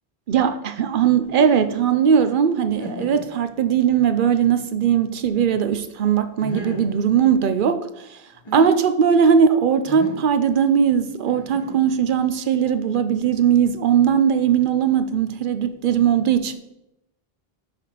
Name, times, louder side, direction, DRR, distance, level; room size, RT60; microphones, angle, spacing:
voice 1, 0.3-7.8 8.5-16.5, right 7 dB, 60° right, 0.8 m, -19 dB
sound 1, 1.2-1.7 2.3-2.4 2.8-3.3 4.0-4.1 6.4-6.9 8.3-8.7 9.9-10.3 11.3-12.1, left 1 dB, 25° left, 1.4 m, -34 dB
5.8 x 5.1 x 5.7 m
omnidirectional pair, 1.0 m